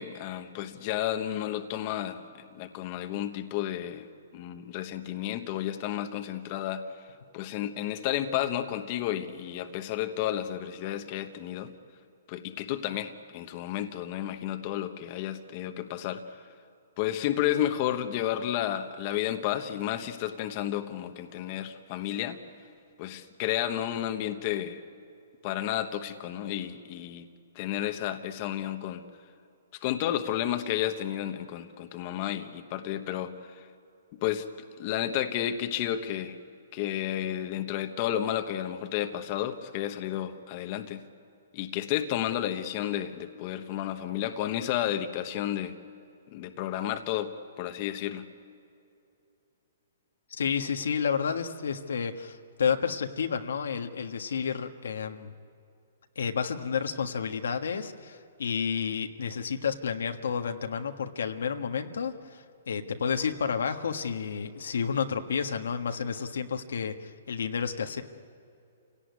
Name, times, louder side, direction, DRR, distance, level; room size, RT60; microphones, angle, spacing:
voice 1, 0.0-2.2 2.5-4.1 4.3-6.9 7.3-11.7 12.3-16.2 17.0-22.4 23.0-24.8 25.4-27.3 27.5-29.1 29.8-33.6 34.2-34.5 34.8-36.4 36.7-41.0 41.5-45.7 46.3-47.3 47.6-48.3, left 11 dB, 35° left, 8 dB, 1.1 m, -31 dB
voice 2, 50.3-55.3 56.1-68.0, left 6 dB, 85° left, 6 dB, 1.5 m, -31 dB
28.5 x 17.5 x 9.6 m, 2.6 s
hypercardioid pair, 165°, 0 cm